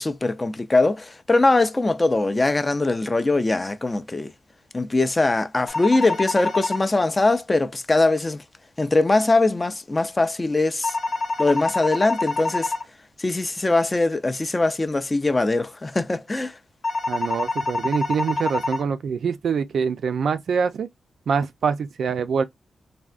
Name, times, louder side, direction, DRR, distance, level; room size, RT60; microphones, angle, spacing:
voice 1, 0.0-4.3 4.7-8.4 8.8-11.0 11.4-12.7 13.2-16.6, left 2 dB, 20° left, 0.3 m, -21 dB
sound 1, 5.7-6.8 10.8-12.8 16.8-18.8, left 3 dB, 45° left, 0.8 m, -26 dB
voice 2, 17.1-20.9 21.3-22.4, right 6 dB, 65° right, 0.4 m, -24 dB
3.4 x 2.1 x 2.4 m
wide cardioid pair, 135°, 0 cm